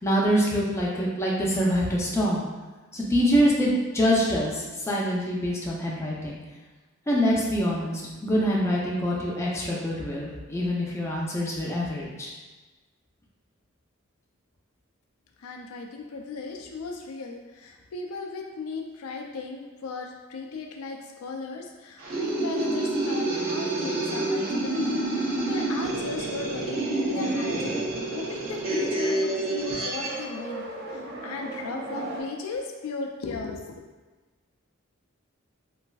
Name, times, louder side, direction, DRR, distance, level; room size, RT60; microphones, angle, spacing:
voice 1, 0.0-2.4 2.9-6.4 7.1-12.3, equal, 15° left, -4 dB, 0.4 m, -25 dB
voice 2, 15.4-33.8, left 4 dB, 80° left, 1 dB, 0.4 m, -36 dB
sound 1, 22.0-30.2, right 2 dB, 65° right, 0.9 m, -28 dB
sound 2, 24.8-32.2, right 2 dB, 50° right, 0.4 m, -40 dB
3.1 x 2.5 x 2.3 m, 1.3 s
head